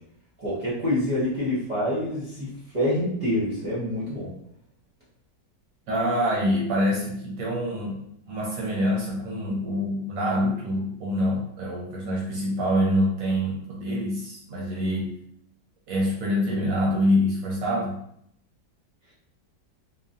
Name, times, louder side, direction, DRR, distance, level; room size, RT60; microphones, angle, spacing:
voice 1, 0.4-2.5 2.7-4.3, left 1 dB, 50° right, -8 dB, 0.5 m, -26 dB
voice 2, 5.9-15.1 15.9-18.1, equal, 70° right, -3 dB, 0.8 m, -25 dB
3.0 x 2.0 x 2.5 m, 0.72 s
omnidirectional pair, 1.8 m